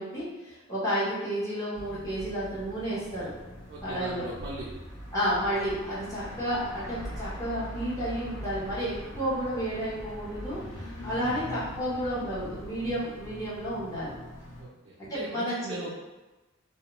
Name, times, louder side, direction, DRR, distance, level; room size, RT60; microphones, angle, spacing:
voice 1, 0.0-3.3 3.8-4.2 5.1-14.1 15.0-15.8, equal, 15° left, -10 dB, 0.6 m, -31 dB
sound 1, 1.7-14.6, equal, 60° left, 0.5 m, -42 dB
voice 2, 3.7-4.7 11.1-11.4 14.6-16.0, right 2 dB, 55° right, -5 dB, 0.3 m, -39 dB
2.2 x 2.1 x 2.9 m, 1.1 s
head